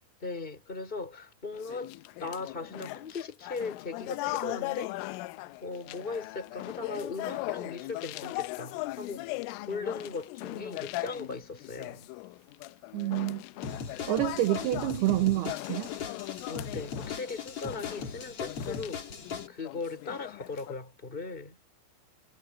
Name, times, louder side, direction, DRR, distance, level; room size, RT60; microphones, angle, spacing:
voice 1, 0.2-1.9 2.2-5.3 5.6-9.3 9.6-12.1 16.5-19.0 19.5-21.6, left 4 dB, 10° left, 4.7 m, -38 dB
sound 1, 1.5-20.8, left 20 dB, 85° left, 3.2 m, -39 dB
voice 2, 12.9-13.4 14.1-15.9, right 16 dB, 85° right, 2.3 m, -28 dB
sound 2, 13.6-19.5, left 5 dB, 35° left, 2.7 m, -39 dB
omnidirectional pair, 5.8 m